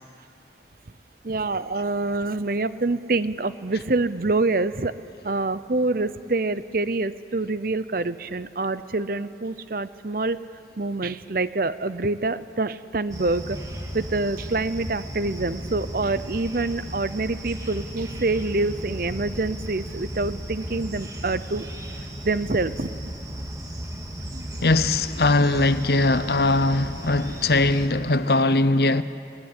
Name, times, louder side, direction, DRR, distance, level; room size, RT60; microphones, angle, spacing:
voice 1, 1.2-4.9 5.2-10.4 10.8-13.6 13.9-21.7 22.2-22.9 24.3-24.5, right 3 dB, 50° right, 0.7 m, -26 dB
sound 1, 13.1-27.9, equal, 20° right, 2.0 m, -35 dB
voice 2, 24.6-29.0, left 2 dB, 60° left, 0.8 m, -20 dB
21.5 x 20.0 x 10.0 m
head